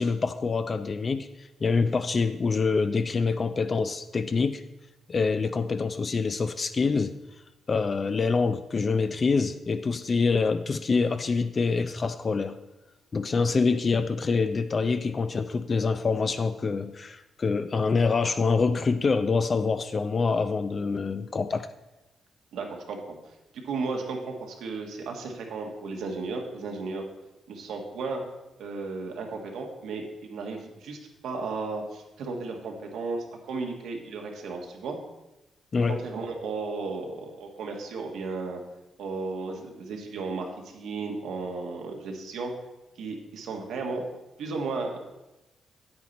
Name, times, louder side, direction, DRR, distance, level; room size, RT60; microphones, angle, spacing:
voice 1, 0.0-4.6 5.1-7.2 7.7-12.6 13.1-21.7 35.7-36.0, left 4 dB, 40° left, 0.4 m, -26 dB
voice 2, 22.5-23.0 23.2-27.0 27.5-28.2 28.6-35.0 35.9-38.6 39.0-42.5 43.0-44.0 44.4-45.1, right 3 dB, 85° right, 1.6 m, -34 dB
8.7 x 8.6 x 4.1 m
cardioid pair, 95°, 0 cm